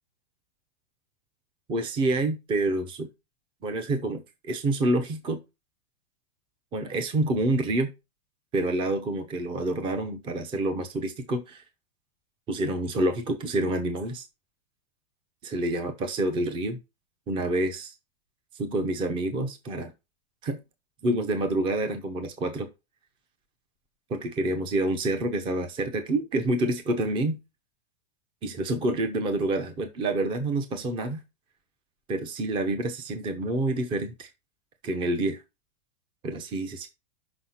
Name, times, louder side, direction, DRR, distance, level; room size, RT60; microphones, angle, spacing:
voice 1, 1.7-3.1 3.6-5.4 6.7-7.9 8.5-11.6 12.5-14.3 15.4-16.8 17.3-17.9 18.5-19.9 20.4-20.6 21.0-22.7 24.1-27.4 28.4-31.2 32.1-34.3 34.8-35.4 36.2-36.9, right 2 dB, 15° right, 8 dB, 0.8 m, -28 dB
6.1 x 5.7 x 5.7 m, 0.25 s
supercardioid pair, 170°, 32 cm